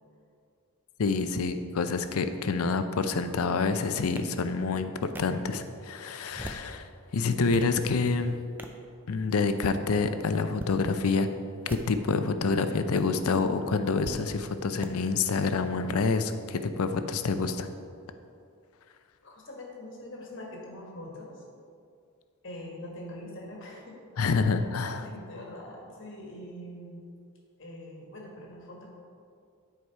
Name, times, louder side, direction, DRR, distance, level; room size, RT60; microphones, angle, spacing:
voice 1, 1.0-8.4 9.1-11.3 11.7-17.7 24.2-25.1, left 4 dB, 75° left, 9 dB, 0.5 m, -27 dB
sound 1, 4.2-4.3 5.1-5.2 6.2-6.7 7.2-7.7 8.6-8.8 9.5-9.8 10.5-10.7 11.6-12.1 12.9-13.0 14.0-14.2 14.8-14.9, right 1 dB, 10° right, 0.4 m, -40 dB
voice 2, 19.2-21.4 22.4-24.0 24.4-24.6 25.0-27.0 27.6-28.9, left 1 dB, 55° left, -1 dB, 1.6 m, -43 dB
9.8 x 4.8 x 4.6 m, 2.3 s
head